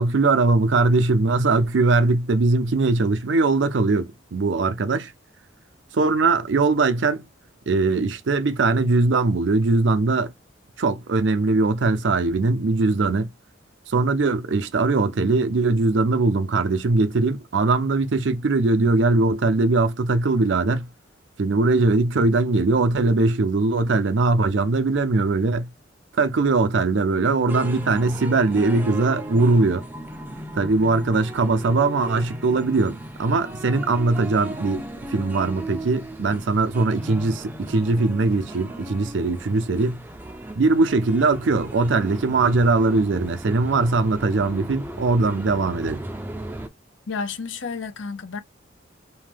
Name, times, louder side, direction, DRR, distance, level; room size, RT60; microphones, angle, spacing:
voice 1, 0.0-5.1 5.9-7.2 7.7-10.3 10.8-13.3 13.9-20.9 21.4-25.7 26.2-29.9 30.5-40.0 40.6-46.0, right 3 dB, 75° right, 0.5 m, -21 dB
sound 1, 27.5-46.7, right 1 dB, 10° right, 0.4 m, -37 dB
voice 2, 47.1-48.4, left 4 dB, 85° left, 0.6 m, -31 dB
2.7 x 2.2 x 3.3 m
head